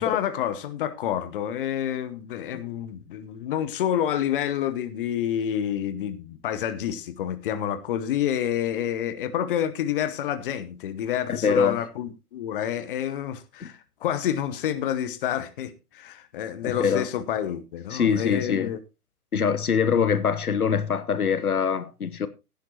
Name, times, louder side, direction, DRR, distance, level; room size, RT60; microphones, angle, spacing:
voice 1, 0.0-18.8, left 10 dB, 35° left, 1.0 m, -28 dB
voice 2, 11.3-11.8 13.6-13.7 16.6-17.1 17.9-18.7 19.3-22.3, left 6 dB, 70° left, 1.1 m, -24 dB
16.0 x 10.5 x 2.9 m
figure-of-eight pair, 120°, 45 cm